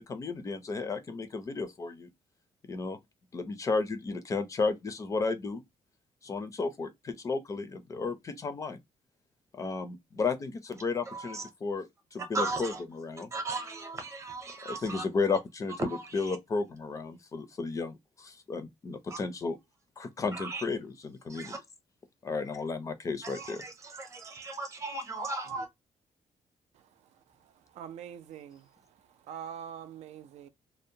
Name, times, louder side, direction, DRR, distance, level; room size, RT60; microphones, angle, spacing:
voice 1, 0.0-2.1 2.7-3.0 3.3-5.6 6.2-8.8 9.6-13.3 14.7-15.9 16.1-19.6 20.0-21.6 22.2-23.6, left 4 dB, 30° left, 0.4 m, -33 dB
voice 2, 11.1-11.5 12.2-12.8 13.3-15.1 15.8-16.4 19.1-19.2 20.3-20.6 21.3-21.6 23.2-25.7, right 3 dB, 25° right, 0.7 m, -37 dB
voice 3, 27.7-28.7 29.3-30.5, right 9 dB, 80° right, 0.4 m, -43 dB
2.5 x 2.0 x 2.7 m
cardioid pair, 175°, 11 cm